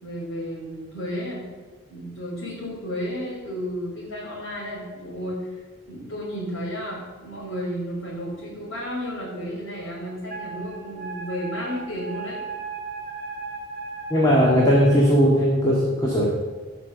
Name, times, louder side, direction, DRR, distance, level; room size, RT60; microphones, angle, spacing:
voice 1, 0.0-1.4 1.9-12.4, equal, 75° left, -8 dB, 4.2 m, -32 dB
Wind instrument woodwind instrument, 10.3-15.0, right 4 dB, 40° right, 3.5 m, -36 dB
voice 2, 14.1-16.3, equal, 15° left, -4 dB, 2.1 m, -18 dB
14.5 x 6.2 x 7.2 m, 1.3 s
head